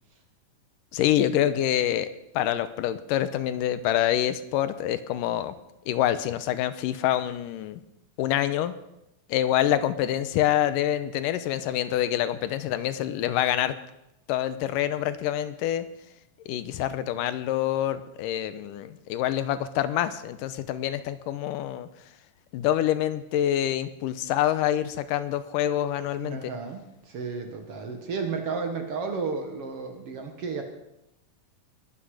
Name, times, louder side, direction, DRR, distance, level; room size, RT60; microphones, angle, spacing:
voice 1, 0.9-2.1 2.4-5.5 5.9-7.8 8.2-8.8 9.3-13.8 14.3-15.9 16.5-21.9 22.5-26.5, left 12 dB, 85° left, 13 dB, 2.4 m, -26 dB
voice 2, 26.2-30.6, right 4 dB, 50° right, 5 dB, 2.1 m, -33 dB
20.5 x 12.0 x 4.9 m, 0.86 s
omnidirectional pair, 3.8 m